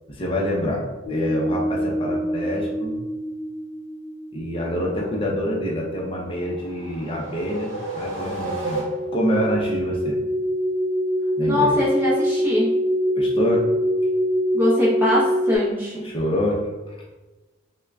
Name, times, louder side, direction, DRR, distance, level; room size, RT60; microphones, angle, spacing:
voice 1, 0.1-3.0 4.3-8.9 9.1-10.2 11.4-11.8 13.1-13.6 16.0-16.6, equal, 30° left, -3 dB, 0.6 m, -26 dB
sound 1, 1.0-5.2 8.3-15.6, equal, 60° left, 0.8 m, -24 dB
sound 2, 6.3-9.4, right 2 dB, 90° right, 0.7 m, -32 dB
voice 2, 11.4-12.7 14.5-16.0, left 1 dB, 10° right, -7 dB, 0.7 m, -22 dB
3.5 x 2.2 x 3.4 m, 1.2 s
head